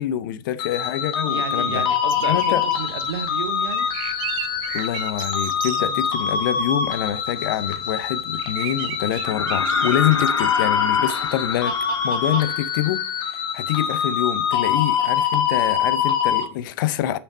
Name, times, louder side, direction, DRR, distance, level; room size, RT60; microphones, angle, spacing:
voice 1, 0.0-1.9 2.3-2.6 4.7-11.8 12.0-17.2, left 12 dB, 50° left, 0.6 m, -26 dB
sound 1, 0.6-16.4, left 8 dB, 35° left, 1.3 m, -24 dB
voice 2, 1.3-3.9 5.8-6.0, right 7 dB, 65° right, 0.8 m, -32 dB
sound 2, 2.1-12.5, right 14 dB, 35° right, 0.5 m, -37 dB
sound 3, 9.2-13.0 14.9-15.0, left 4 dB, 80° left, 0.8 m, -28 dB
6.5 x 6.0 x 4.1 m
figure-of-eight pair, 90°, 14 cm